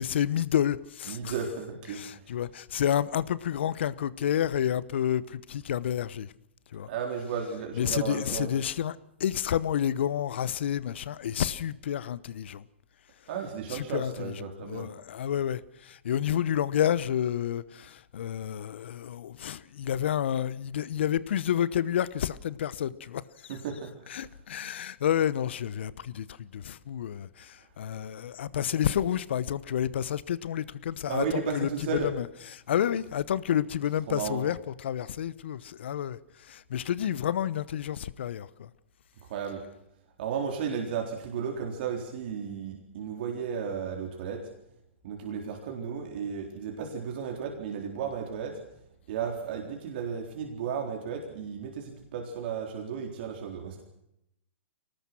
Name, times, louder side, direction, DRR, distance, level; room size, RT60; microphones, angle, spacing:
voice 1, 0.0-1.3 1.9-6.3 6.7-6.9 7.8-12.6 13.7-23.2 24.1-32.3 32.5-34.6 34.8-38.7, left 10 dB, 65° left, 1.0 m, -30 dB
voice 2, 1.1-2.2 6.9-8.5 13.3-14.9 23.5-24.1 31.1-32.1 34.1-34.4 39.3-39.6 40.2-44.5 45.0-48.6 49.1-53.8, right 6 dB, 55° right, 3.9 m, -34 dB
23.5 x 19.0 x 6.2 m
hypercardioid pair, 120°, 7 cm